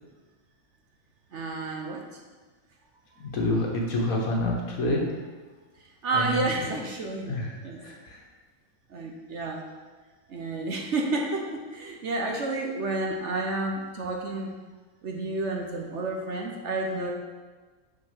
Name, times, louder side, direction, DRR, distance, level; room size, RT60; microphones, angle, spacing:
voice 1, 1.3-2.0 6.0-7.3 7.6-7.8 8.9-9.6 10.3-14.5 15.0-17.1, right 2 dB, 55° right, 1 dB, 1.0 m, -30 dB
voice 2, 3.2-5.2 6.1-6.7 7.3-8.3, left 1 dB, 65° left, -1 dB, 1.7 m, -28 dB
6.3 x 5.0 x 5.8 m, 1.3 s
omnidirectional pair, 1.6 m